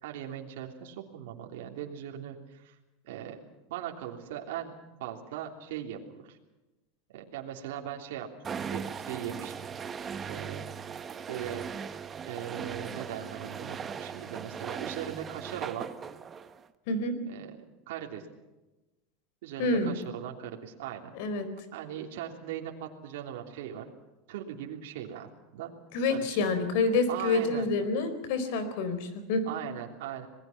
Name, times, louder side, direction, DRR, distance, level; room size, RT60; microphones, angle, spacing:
voice 1, 0.0-2.8 3.0-3.4 3.7-4.7 5.0-6.4 7.1-8.3 8.6-9.7 10.3-10.6 11.3-11.6 12.3-15.9 17.3-17.5 17.9-18.3 19.4-21.1 21.7-23.9 24.3-25.7 26.1-26.4 27.1-27.7 29.4-30.3, right 10 dB, 75° right, 1 dB, 3.2 m, -39 dB
sound 1, 8.4-16.7, right 6 dB, 20° right, 1.0 m, -39 dB
voice 2, 19.6-19.9 21.2-21.5 25.9-29.4, left 3 dB, 60° left, 10 dB, 4.3 m, -27 dB
27.0 x 20.0 x 5.9 m, 1.0 s
supercardioid pair, 150°, 0 cm